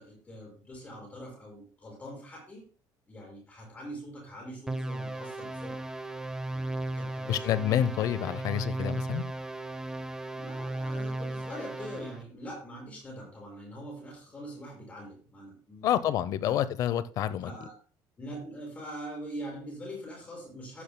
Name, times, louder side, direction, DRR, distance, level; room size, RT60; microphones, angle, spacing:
voice 1, 0.0-2.6 3.1-5.8 6.5-7.5 10.3-16.0 16.4-16.6 17.4-17.7 18.2-20.8, equal, 15° left, 5.9 m, -43 dB
sound 1, 4.7-12.2, right 2 dB, 5° right, 0.7 m, -36 dB
voice 2, 7.3-9.2 15.8-17.5, left 10 dB, 45° left, 0.7 m, -28 dB
14.5 x 11.0 x 2.2 m
cardioid pair, 180°, 8 cm